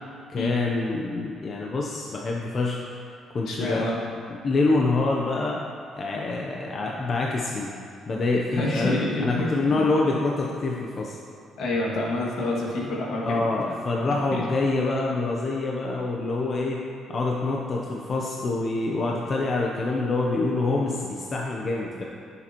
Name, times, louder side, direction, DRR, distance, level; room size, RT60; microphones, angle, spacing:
voice 1, 0.3-2.8 3.3-3.9 4.3-5.6 5.9-7.7 8.1-11.2 13.2-16.8 17.1-22.0, left 3 dB, 35° left, -2 dB, 0.7 m, -26 dB
voice 2, 3.5-4.0 8.5-9.9 11.6-13.8 14.3-14.4, left 2 dB, 70° left, -3 dB, 1.9 m, -28 dB
14.0 x 7.0 x 3.0 m, 2.4 s
cardioid pair, 135°, 0 cm